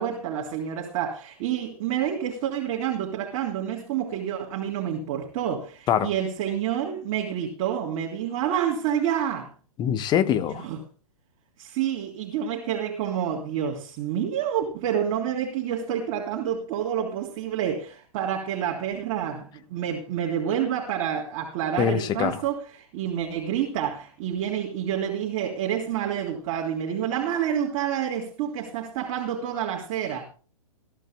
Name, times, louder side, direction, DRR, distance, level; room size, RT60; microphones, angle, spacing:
voice 1, 0.0-9.5 10.3-10.8 11.6-30.3, right 9 dB, 35° right, 3.4 m, -28 dB
voice 2, 9.8-10.7 21.8-22.4, left 9 dB, 20° left, 1.1 m, -23 dB
21.5 x 14.5 x 2.2 m
figure-of-eight pair, 120°, 20 cm